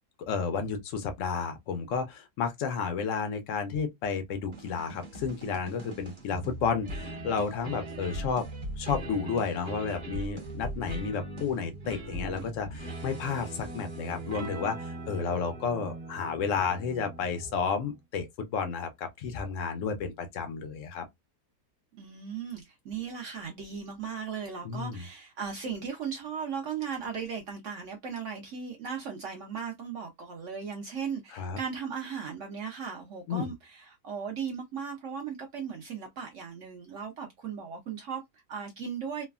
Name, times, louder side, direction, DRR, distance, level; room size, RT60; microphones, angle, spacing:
voice 1, 0.2-8.4 8.8-21.1 24.6-25.0 31.3-31.6 33.3-33.5, left 6 dB, 80° left, 0.7 m, -32 dB
sound 1, 4.5-18.0, right 1 dB, 35° right, 0.8 m, -40 dB
voice 2, 21.9-39.2, right 6 dB, 75° right, 0.7 m, -37 dB
3.2 x 2.1 x 2.3 m
omnidirectional pair, 1.9 m